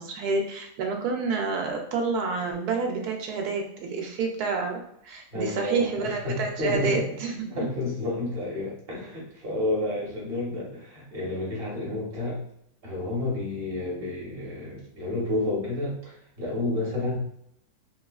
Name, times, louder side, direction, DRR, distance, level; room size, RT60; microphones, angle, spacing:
voice 1, 0.0-7.6, right 4 dB, 85° right, 2 dB, 1.2 m, -29 dB
voice 2, 5.3-7.2 7.5-12.4 12.8-17.2, left 2 dB, 40° right, -3 dB, 1.2 m, -30 dB
4.0 x 2.3 x 2.3 m, 0.73 s
omnidirectional pair, 1.6 m